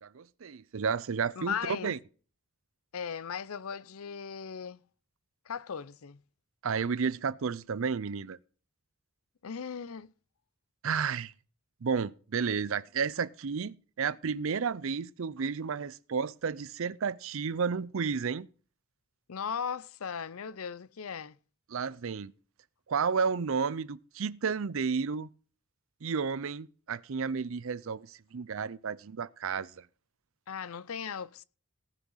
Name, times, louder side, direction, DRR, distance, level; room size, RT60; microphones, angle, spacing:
voice 1, 0.0-2.0 6.6-8.4 10.8-11.3 11.8-18.5 21.7-22.3 22.9-25.3 26.0-29.8, right 5 dB, 60° right, 0.5 m, -32 dB
voice 2, 1.4-2.0 2.9-4.8 5.5-6.2 9.4-10.1 19.3-21.4 30.5-31.4, left 7 dB, 70° left, 0.6 m, -37 dB
18.0 x 6.2 x 5.6 m
head